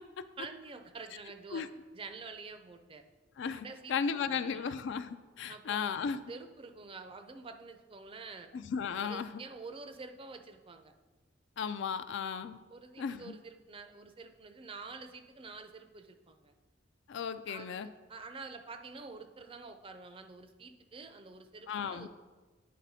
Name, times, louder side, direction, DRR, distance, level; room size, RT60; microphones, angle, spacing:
voice 1, 0.4-1.6 1.9-3.0 3.6-4.8 5.5-6.0 6.3-8.5 9.0-10.9 12.7-16.5 17.5-22.1, right 4 dB, 30° right, 8 dB, 0.4 m, -48 dB
voice 2, 3.4-6.2 8.5-9.3 11.6-12.6 13.0-13.4 17.1-17.9 21.7-22.1, left 6 dB, 65° left, 12 dB, 0.4 m, -35 dB
9.4 x 4.1 x 4.1 m, 1.3 s
head